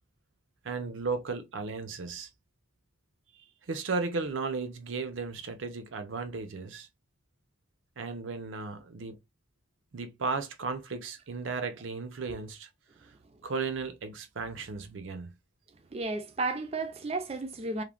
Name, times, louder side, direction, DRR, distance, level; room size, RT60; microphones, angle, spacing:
voice 1, 0.6-2.3 3.7-6.9 8.0-9.2 9.9-12.7 13.4-15.3, right 4 dB, 80° right, 0.6 m, -35 dB
voice 2, 15.9-17.8, right 3 dB, 30° right, 0.4 m, -33 dB
3.1 x 2.1 x 2.4 m
head